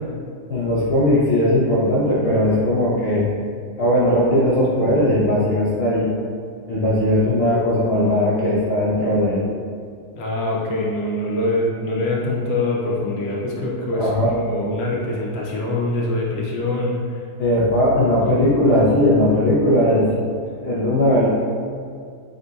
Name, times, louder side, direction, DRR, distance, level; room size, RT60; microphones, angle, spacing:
voice 1, 0.5-3.2 3.8-6.1 6.7-9.4 13.9-14.3 17.4-20.1 20.6-21.3, left 1 dB, 60° left, -7 dB, 0.6 m, -18 dB
voice 2, 10.1-17.2, left 2 dB, 85° left, -3 dB, 1.2 m, -24 dB
4.0 x 2.3 x 3.9 m, 2.3 s
omnidirectional pair, 1.8 m